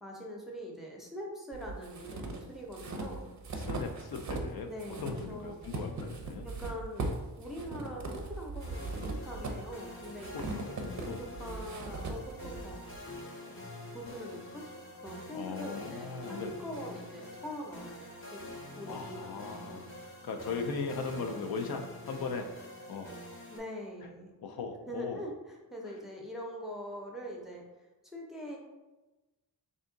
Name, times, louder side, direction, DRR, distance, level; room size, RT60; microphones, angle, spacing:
voice 1, 0.0-3.3 4.7-5.6 6.4-7.0 7.4-12.8 13.4-13.6 13.9-14.7 14.9-18.5 18.8-19.5 23.5-24.3 24.9-27.6 28.0-28.6, equal, ahead, -2 dB, 0.6 m, -43 dB
sound 1, 1.5-4.5 4.8-13.0, right 2 dB, 45° right, 0.5 m, -39 dB
voice 2, 3.6-4.7 5.0-6.5 10.3-11.2 15.3-16.6 18.9-22.5 22.9-23.1 24.4-25.2, left 4 dB, 65° left, 5 dB, 0.5 m, -38 dB
sound 2, 8.6-23.6, left 1 dB, 30° left, 0.8 m, -46 dB
3.4 x 2.7 x 3.8 m, 1.1 s
wide cardioid pair, 155°, 40 cm